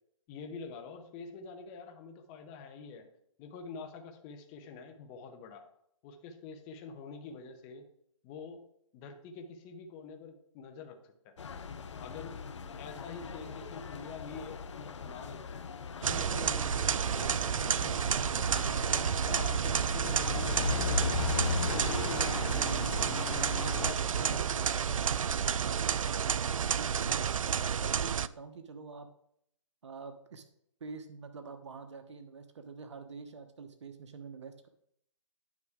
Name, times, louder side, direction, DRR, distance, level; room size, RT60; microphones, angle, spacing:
voice 1, 0.3-3.1 3.4-5.6 6.0-7.8 8.2-8.6 8.9-11.3 12.0-12.4 12.8-15.6 16.1-18.0 18.4-22.8 23.8-24.7, left 4 dB, 20° left, 5 dB, 0.8 m, -46 dB
sound 1, 11.4-23.9, left 5 dB, 65° left, 0.8 m, -38 dB
sound 2, 16.0-28.3, right 7 dB, 85° right, 0.4 m, -30 dB
voice 2, 24.2-24.7 25.4-27.3 27.7-29.1 29.8-30.4 30.8-34.7, right 5 dB, 60° right, 7 dB, 1.1 m, -47 dB
9.8 x 5.9 x 3.6 m, 0.71 s
hypercardioid pair, 155°, 17 cm